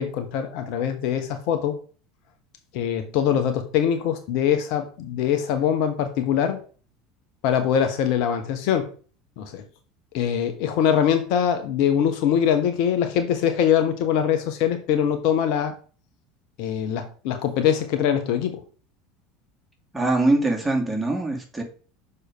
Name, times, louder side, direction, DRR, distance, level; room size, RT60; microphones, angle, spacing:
voice 1, 0.0-1.8 2.7-6.6 7.4-8.9 9.4-9.6 10.1-15.7 16.6-18.6, left 9 dB, 55° left, 7 dB, 1.1 m, -23 dB
voice 2, 19.9-21.6, right 2 dB, 10° right, 0 dB, 2.6 m, -22 dB
6.5 x 4.9 x 4.9 m, 0.40 s
figure-of-eight pair, 75°, 0 cm